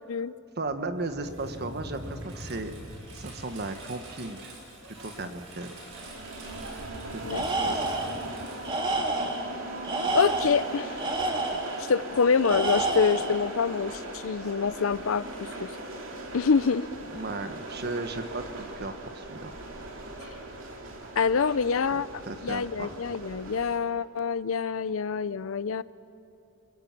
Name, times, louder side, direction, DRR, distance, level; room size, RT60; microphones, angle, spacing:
voice 1, 0.6-2.7 3.1-4.5 5.0-5.7 7.1-7.9 17.1-19.5 21.9-23.0, right 2 dB, 55° right, 8 dB, 1.4 m, -36 dB
Engine, 0.6-9.4, right 1 dB, 90° right, 6.0 m, -44 dB
sound 1, 5.8-23.8, right 2 dB, 70° right, 2.8 m, -40 dB
voice 2, 7.2-7.8 10.1-11.0 11.8-15.7 16.3-16.9 21.2-25.8, left 5 dB, 85° left, 17 dB, 0.6 m, -26 dB
Tools, 7.3-8.2 8.6-9.5 9.8-11.8 12.4-13.4, right 2 dB, 25° right, 2.0 m, -29 dB
29.0 x 21.0 x 6.1 m, 2.6 s
head